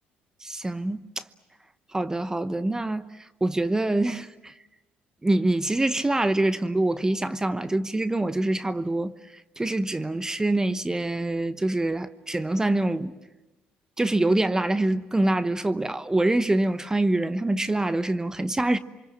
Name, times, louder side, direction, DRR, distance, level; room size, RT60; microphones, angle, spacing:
voice 1, 0.4-1.2 1.9-4.5 5.2-9.1 9.6-13.1 14.0-18.8, right 2 dB, 15° right, 0.9 m, -25 dB
28.0 x 25.0 x 7.7 m
hypercardioid pair, 60°, 4 cm